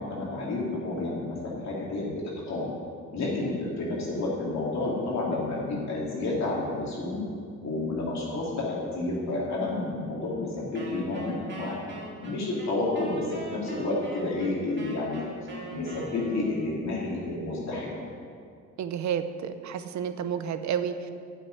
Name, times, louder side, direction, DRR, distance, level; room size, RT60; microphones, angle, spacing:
voice 1, 0.0-2.1 2.5-2.7 3.1-7.2 7.6-11.7 12.2-15.3 15.7-18.0, left 2 dB, 65° left, -5 dB, 3.1 m, -30 dB
Wind instrument woodwind instrument, 10.7-16.8, right 2 dB, 35° right, 2.5 m, -41 dB
voice 2, 18.8-21.1, right 8 dB, 70° right, 10 dB, 0.8 m, -30 dB
8.8 x 8.2 x 9.4 m, 2.3 s
cardioid pair, 110°, 30 cm